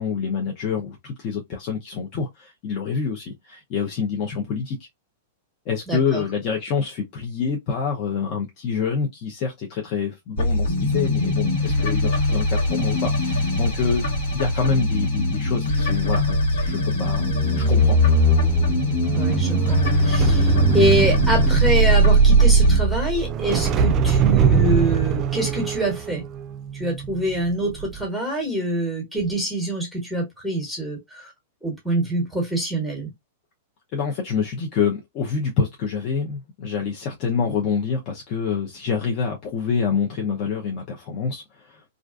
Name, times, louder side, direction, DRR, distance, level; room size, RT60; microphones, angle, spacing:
voice 1, 0.0-4.8 5.7-18.0 33.9-41.8, left 6 dB, 45° left, 0.7 m, -27 dB
voice 2, 5.9-6.2 19.1-26.2 26.7-31.3 31.6-33.1, right 1 dB, ahead, 1.1 m, -25 dB
sound 1, 10.4-22.8, left 2 dB, 75° left, 1.3 m, -22 dB
sound 2, 17.1-27.4 27.7-28.0, right 5 dB, 35° right, 0.3 m, -20 dB
2.5 x 2.2 x 2.5 m
hypercardioid pair, 125°, 0 cm